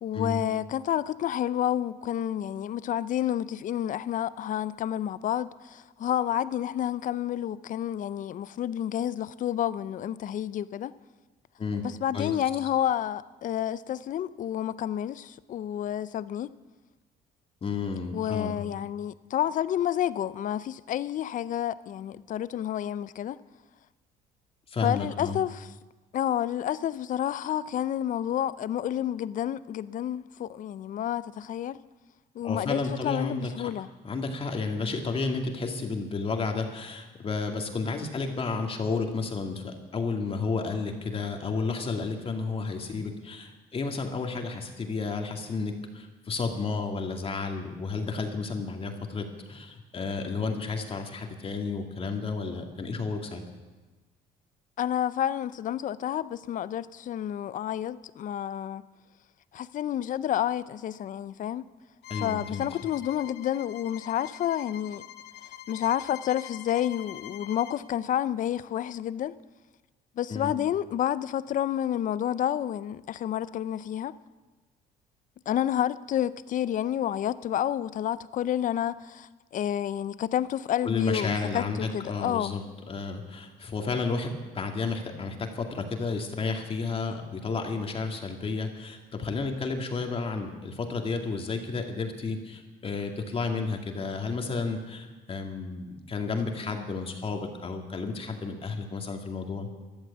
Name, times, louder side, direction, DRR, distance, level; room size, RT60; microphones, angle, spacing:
voice 1, 0.0-10.9 11.8-16.5 18.1-23.4 24.8-25.7 26.1-31.8 32.3-33.9 54.8-58.8 59.5-61.7 62.2-65.0 65.7-69.3 70.2-74.1 75.5-82.6, left 11 dB, 50° left, 0.6 m, -30 dB
voice 2, 17.6-18.6 24.7-25.4 32.4-33.7 34.0-53.4 62.1-62.6 70.3-70.5 80.8-82.6 82.9-99.7, left 4 dB, 35° left, 2.3 m, -32 dB
Bowed string instrument, 62.0-67.8, left 11 dB, 75° left, 0.9 m, -44 dB
14.5 x 11.5 x 8.3 m
cardioid pair, 110°, 17 cm